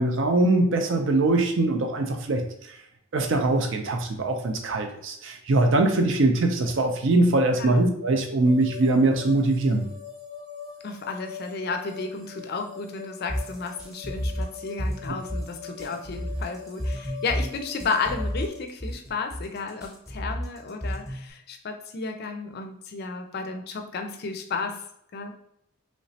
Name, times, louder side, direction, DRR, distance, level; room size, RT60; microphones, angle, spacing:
voice 1, 0.0-2.4 3.1-9.9, right 2 dB, 60° right, 4 dB, 0.5 m, -22 dB
voice 2, 7.6-7.9 10.8-24.8 25.1-25.3, left 4 dB, 45° left, 6 dB, 0.4 m, -33 dB
sound 1, 8.4-18.5, left 6 dB, 90° right, 1.4 m, -42 dB
sound 2, 13.3-21.3, equal, ahead, 0.9 m, -31 dB
3.1 x 3.0 x 2.7 m, 0.72 s
head